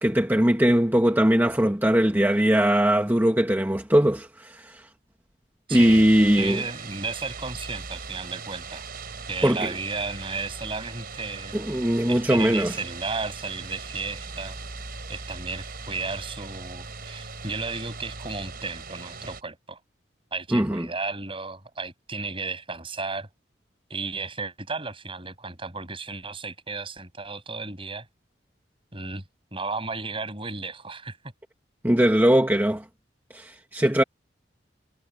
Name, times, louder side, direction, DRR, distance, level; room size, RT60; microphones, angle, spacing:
voice 1, 0.0-4.8 5.7-6.6 9.4-9.7 11.5-12.7 20.5-20.9 31.8-32.8 33.3-34.0, equal, 10° right, 1.3 m, -20 dB
voice 2, 5.7-6.1 6.3-8.8 9.3-11.8 12.1-14.6 15.1-19.8 20.3-23.3 23.9-28.0 28.9-29.2 29.5-31.2, right 4 dB, 30° right, 6.5 m, -34 dB
sound 1, 5.7-19.4, right 4 dB, 50° right, 5.1 m, -39 dB
head